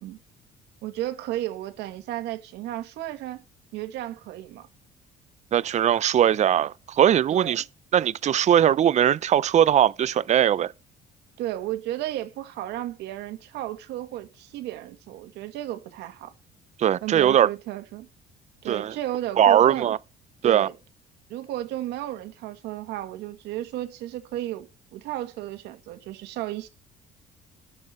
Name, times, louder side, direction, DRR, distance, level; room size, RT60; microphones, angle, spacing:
voice 1, 0.8-3.4 3.7-4.7 7.3-7.6 11.4-16.3 17.0-18.1 18.6-20.0 20.4-20.7 21.3-26.7, right 14 dB, 85° right, 1.8 m, -33 dB
voice 2, 5.5-7.6 7.9-10.7 16.8-17.5 18.7-18.9 19.4-20.0 20.4-20.7, right 10 dB, 45° right, 0.5 m, -20 dB
13.0 x 6.8 x 4.3 m
cardioid pair, 110°, 17 cm